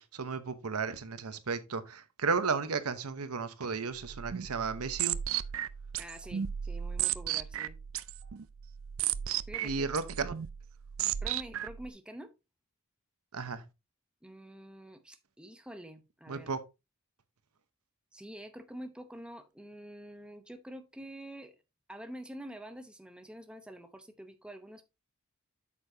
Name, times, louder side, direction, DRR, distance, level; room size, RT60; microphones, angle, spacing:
voice 1, 0.0-5.2 9.6-10.3 13.3-13.6 16.3-16.6, right 5 dB, 85° right, 0.9 m, -34 dB
sound 1, 4.0-11.9, right 11 dB, 65° right, 0.4 m, -35 dB
voice 2, 6.0-7.8 9.5-10.0 11.2-12.3 14.2-16.5 18.1-21.6 21.9-24.8, right 1 dB, 5° right, 0.8 m, -47 dB
8.4 x 6.8 x 2.7 m
head